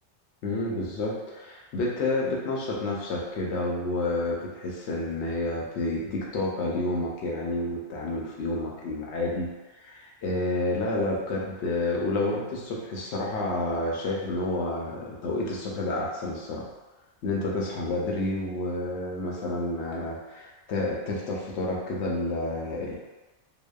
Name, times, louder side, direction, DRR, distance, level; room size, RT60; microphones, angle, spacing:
voice 1, 0.4-9.5 9.8-16.7 17.2-22.9, left 2 dB, 75° left, -3 dB, 0.8 m, -29 dB
2.7 x 2.1 x 2.2 m, 1.1 s
omnidirectional pair, 1.2 m